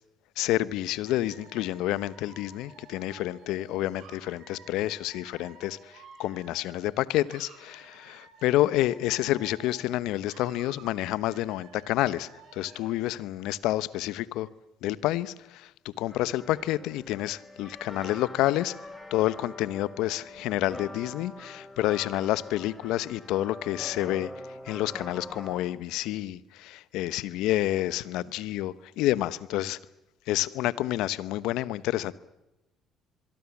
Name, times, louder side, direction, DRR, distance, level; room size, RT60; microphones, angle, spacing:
voice 1, 0.4-5.9 6.2-14.5 14.8-18.7 19.1-24.3 24.6-29.8 30.3-32.1, left 15 dB, 75° left, 17 dB, 0.9 m, -29 dB
Dog / Alarm, 1.1-7.0 7.2-10.0 10.3-13.0, right 5 dB, 75° right, 6.9 m, -53 dB
sound 1, 16.1-25.6, left 1 dB, 15° left, 6.2 m, -44 dB
25.0 x 23.0 x 7.2 m, 0.97 s
hypercardioid pair, 60°, 0 cm